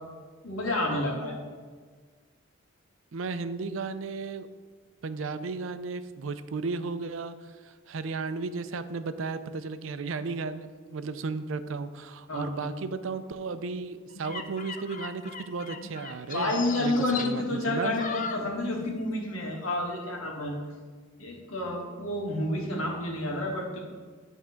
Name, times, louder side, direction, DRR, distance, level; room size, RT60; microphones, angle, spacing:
voice 1, 0.4-1.4 12.3-12.7 16.3-20.6 21.2-23.8, left 1 dB, 90° left, -1 dB, 1.8 m, -30 dB
voice 2, 3.1-4.5 5.0-7.3 7.6-16.5 16.8-18.0, right 4 dB, 70° right, 11 dB, 0.5 m, -34 dB
sound 1, 14.1-19.0 19.3-19.6, left 5 dB, 40° left, 0.5 m, -39 dB
10.0 x 3.6 x 5.7 m, 1.5 s
head